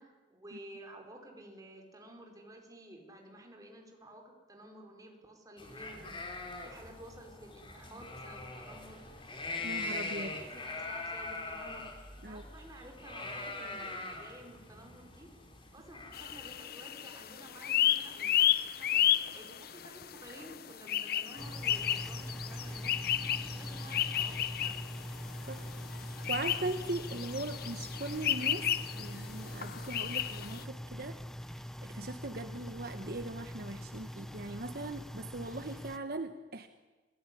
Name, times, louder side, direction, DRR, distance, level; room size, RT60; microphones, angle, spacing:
voice 1, 0.0-9.0 9.4-15.3 15.7-24.3 24.6-24.8, right 1 dB, 20° right, 2 dB, 4.9 m, -53 dB
sound 1, 5.6-16.5, left 2 dB, 25° left, 4.1 m, -42 dB
voice 2, 9.6-10.3 12.2-12.4 25.4-28.7 29.0-36.7, right 2 dB, 55° right, 8 dB, 1.2 m, -40 dB
sound 2, 16.1-30.6, left 11 dB, 55° left, 0.8 m, -33 dB
sound 3, 21.4-36.0, equal, ahead, 0.8 m, -43 dB
29.0 x 19.0 x 10.0 m, 1.2 s
head